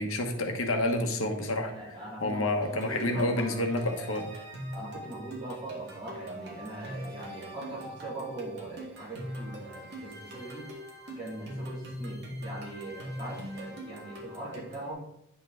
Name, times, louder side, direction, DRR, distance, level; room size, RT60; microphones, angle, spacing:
voice 1, 0.0-1.7 2.2-4.3, left 1 dB, 80° left, 4 dB, 1.3 m, -29 dB
voice 2, 1.7-3.6 4.7-10.7 11.2-15.0, right 2 dB, 25° right, -6 dB, 2.9 m, -41 dB
sound 1, 2.6-14.9, equal, 50° right, 2.0 m, -42 dB
9.7 x 5.4 x 3.9 m, 0.77 s
head